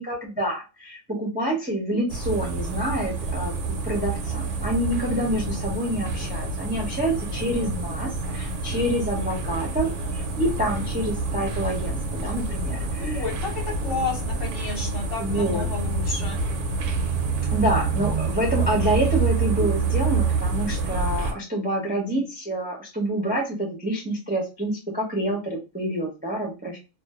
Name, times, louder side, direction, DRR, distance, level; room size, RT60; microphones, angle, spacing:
voice 1, 0.0-3.5 3.8-13.2 15.2-15.7 17.5-26.8, right 1 dB, 10° right, -2 dB, 0.4 m, -27 dB
sound 1, 2.1-21.3, right 4 dB, 75° right, 0.9 m, -27 dB
voice 2, 13.0-16.4, left 4 dB, 50° left, -1 dB, 1.0 m, -31 dB
2.5 x 2.2 x 2.2 m, 0.29 s
omnidirectional pair, 1.3 m